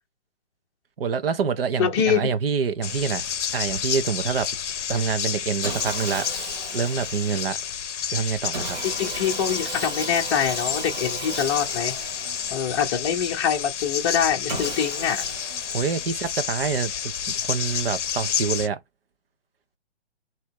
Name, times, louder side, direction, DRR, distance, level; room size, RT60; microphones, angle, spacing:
voice 1, 1.0-4.5 4.9-6.3 6.7-7.6 8.1-8.8 15.7-18.8, right 6 dB, 55° right, 0.9 m, -26 dB
voice 2, 1.8-2.3 9.0-11.9 12.5-15.2, left 8 dB, 25° left, 0.7 m, -24 dB
sound 1, 2.8-18.7, left 8 dB, 85° left, 0.6 m, -30 dB
Sawing, 5.6-7.7 8.5-13.1 14.5-16.3, right 3 dB, 40° right, 1.5 m, -36 dB
3.2 x 3.0 x 4.6 m
hypercardioid pair, 155°, 35 cm